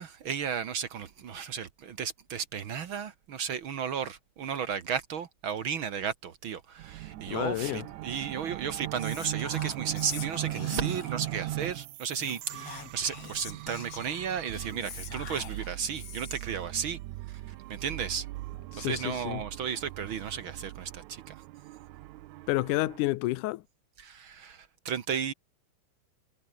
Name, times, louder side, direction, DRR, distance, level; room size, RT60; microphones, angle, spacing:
voice 1, 0.0-17.0 17.3-17.4 17.7-18.3 18.7-21.3 24.0-25.3, right 7 dB, 60° right, 1.4 m, -34 dB
sound 1, 6.8-23.0, right 17 dB, 80° right, 1.7 m, -39 dB
voice 2, 7.3-7.9 18.7-19.4 22.5-23.6, left 18 dB, 75° left, 1.9 m, -30 dB
Whispering, 9.0-11.3 12.1-16.6, left 8 dB, 50° left, 2.8 m, -44 dB
omnidirectional pair, 4.1 m